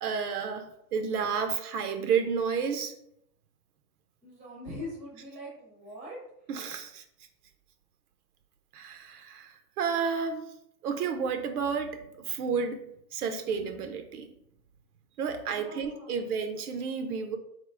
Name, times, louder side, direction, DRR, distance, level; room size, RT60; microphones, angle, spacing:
voice 1, 0.0-2.9 6.5-7.0 8.7-10.4 10.8-14.3 15.2-17.4, right 6 dB, 65° right, 7 dB, 0.7 m, -31 dB
voice 2, 4.2-6.2 10.4-10.5 15.4-16.3, left 1 dB, 10° right, -4 dB, 0.6 m, -43 dB
3.6 x 2.9 x 4.7 m, 0.75 s
supercardioid pair, 175°, 48 cm